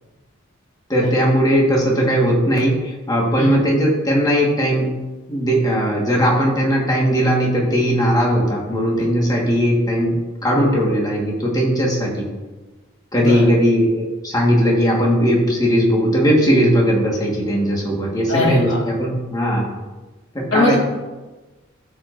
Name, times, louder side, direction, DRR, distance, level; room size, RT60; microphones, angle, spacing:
voice 1, 0.9-4.9 5.3-12.2 13.1-19.7 20.3-20.8, equal, 20° left, -2 dB, 1.5 m, -18 dB
voice 2, 18.3-18.8 20.5-20.8, left 1 dB, 60° left, -5 dB, 2.7 m, -19 dB
14.0 x 5.0 x 2.6 m, 1.2 s
head